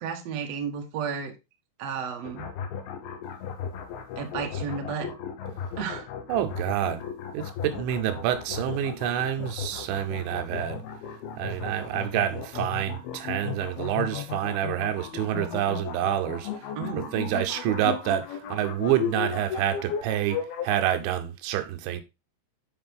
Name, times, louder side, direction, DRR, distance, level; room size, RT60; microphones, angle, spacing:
voice 1, 0.0-1.3 1.8-2.5 4.2-5.2 5.5-6.1 16.7-17.1, right 6 dB, 70° right, 1.5 m, -33 dB
sound 1, 2.2-20.8, left 8 dB, 70° left, 2.8 m, -35 dB
voice 2, 6.3-7.0 7.3-10.8 11.4-16.7 16.9-22.0, right 11 dB, 90° right, 3.3 m, -28 dB
10.0 x 4.9 x 3.6 m
omnidirectional pair, 5.1 m